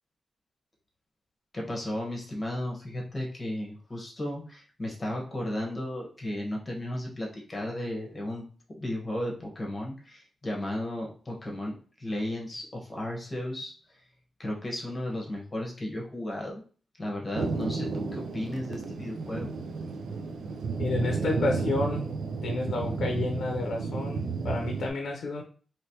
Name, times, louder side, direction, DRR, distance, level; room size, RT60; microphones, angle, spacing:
voice 1, 1.5-8.4 8.8-14.0 14.4-16.6 17.0-19.5, left 1 dB, 30° left, -2 dB, 1.1 m, -34 dB
Thunder, 17.3-24.9, right 4 dB, 90° right, 0.4 m, -32 dB
voice 2, 20.8-22.1 22.4-25.4, left 2 dB, 80° left, 2 dB, 0.6 m, -30 dB
3.2 x 3.0 x 2.8 m, 0.41 s
cardioid pair, 95°, 0 cm